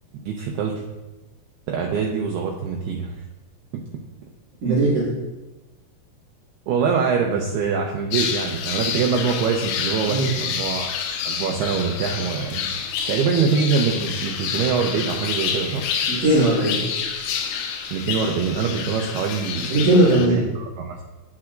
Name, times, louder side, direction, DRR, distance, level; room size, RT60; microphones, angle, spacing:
voice 1, 0.3-0.8 1.7-3.2 3.7-3.8 4.7-4.8 6.7-10.9 11.3-12.7 13.1-15.9 17.9-19.7 20.1-21.0, right 5 dB, 85° right, 1 dB, 2.3 m, -24 dB
voice 2, 4.6-5.1 10.1-10.3 16.1-16.9 19.7-20.5, right 1 dB, 50° right, -7 dB, 2.6 m, -18 dB
sound 1, 8.1-20.3, left 7 dB, 75° left, 2.8 m, -28 dB
10.5 x 9.6 x 2.5 m, 1.1 s
omnidirectional pair, 5.5 m